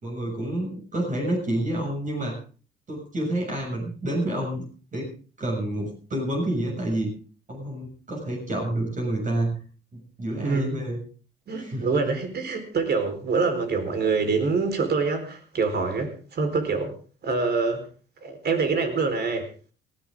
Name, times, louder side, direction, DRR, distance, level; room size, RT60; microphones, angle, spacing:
voice 1, 0.0-2.4 2.9-7.1 7.5-9.6 9.9-11.0 11.6-11.9, right 1 dB, 40° right, 0 dB, 6.9 m, -29 dB
voice 2, 10.4-10.8 11.5-16.9 17.2-17.9 18.2-19.5, right 4 dB, 55° right, 6 dB, 4.5 m, -25 dB
19.0 x 15.5 x 3.8 m, 0.39 s
cardioid pair, 90°, 20 cm